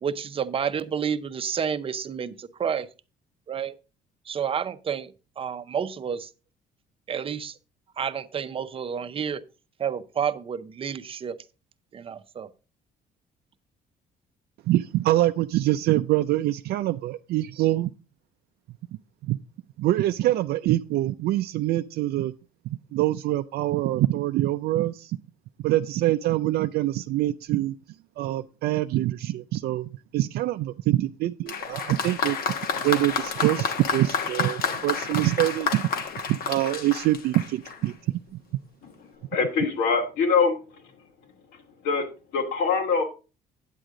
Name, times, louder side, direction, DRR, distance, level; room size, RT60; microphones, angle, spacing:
voice 1, 0.0-2.9 3.5-3.7 4.3-6.3 7.1-7.5 8.0-9.4 9.8-11.4 11.9-12.5, right 7 dB, 35° right, 0.7 m, -30 dB
voice 2, 14.7-17.9 19.2-19.4 19.8-22.3 22.6-25.2 25.6-27.8 28.2-32.4 32.7-35.8 36.3-37.9 38.3-38.4, right 15 dB, 70° right, 0.4 m, -25 dB
Applause, 31.5-37.9 38.8-38.9, left 5 dB, 60° left, 1.3 m, -30 dB
voice 3, 39.3-40.6 41.5-42.0 42.3-43.0, left 5 dB, 75° left, 2.7 m, -23 dB
9.1 x 7.9 x 3.7 m
cardioid pair, 110°, 17 cm